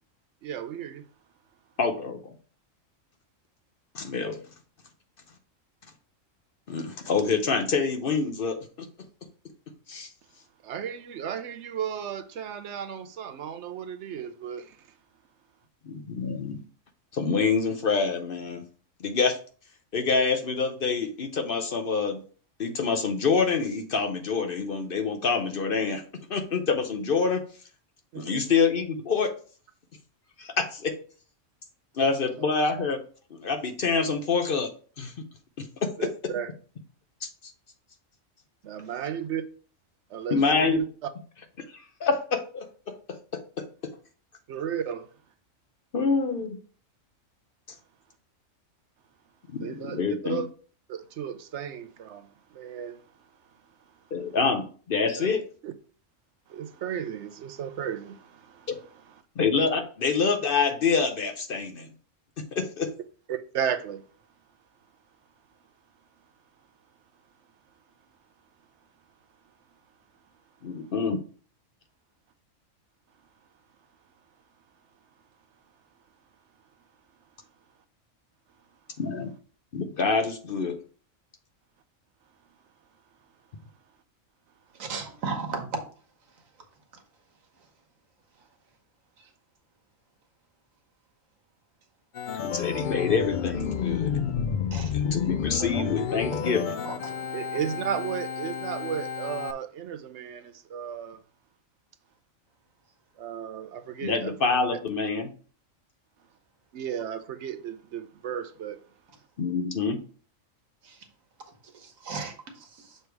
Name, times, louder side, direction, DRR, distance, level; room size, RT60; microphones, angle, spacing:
voice 1, 0.4-1.0 10.6-14.7 28.1-28.4 32.8-32.9 36.0-36.5 38.6-39.4 40.1-40.8 44.5-45.1 49.6-50.5 50.9-52.2 52.5-53.0 55.2-55.3 55.6-55.7 56.5-58.7 63.3-64.0 95.6-95.8 97.3-101.2 103.2-104.3 104.7-104.8 106.7-108.8, right 8 dB, 70° right, 0.8 m, -34 dB
voice 2, 1.8-2.3 3.9-4.4 6.7-8.6 9.9-10.1 15.9-16.6 17.1-18.6 19.0-19.4 19.9-22.2 22.6-26.0 26.3-27.4 28.1-29.3 30.4-31.0 32.0-33.0 33.4-34.7 35.0-35.1 35.6-36.1 37.2-37.3 40.3-40.8 42.0-43.2 43.6-43.7 45.9-46.6 49.5-50.4 54.1-55.4 58.7-58.8 59.4-61.9 62.5-62.9 70.6-71.2 79.0-79.3 79.7-80.8 92.3-94.2 94.9-96.8 104.0-105.3 109.4-110.0, left 5 dB, 50° left, 0.8 m, -26 dB
voice 3, 84.8-85.7 89.2-89.3 92.7-92.9 94.7-94.9 96.8-97.1 110.8-111.0 111.7-113.0, right 4 dB, 90° right, 1.5 m, -36 dB
Organ, 92.1-99.5, left 7 dB, 70° left, 0.4 m, -30 dB
6.8 x 3.3 x 4.5 m
omnidirectional pair, 1.4 m